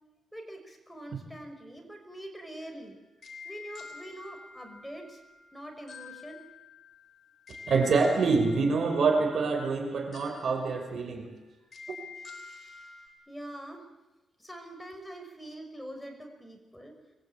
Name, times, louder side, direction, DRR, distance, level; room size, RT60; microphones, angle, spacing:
voice 1, 0.3-3.0 3.4-5.2 5.5-6.4 12.3-13.9 14.4-16.9, right 1 dB, 5° left, 3 dB, 5.5 m, -44 dB
sound 1, 2.6-13.1, left 4 dB, 45° left, 3.7 m, -49 dB
voice 2, 7.7-11.3, right 4 dB, 60° right, 5 dB, 5.6 m, -26 dB
26.0 x 22.0 x 8.8 m, 1.1 s
cardioid pair, 115°, 0 cm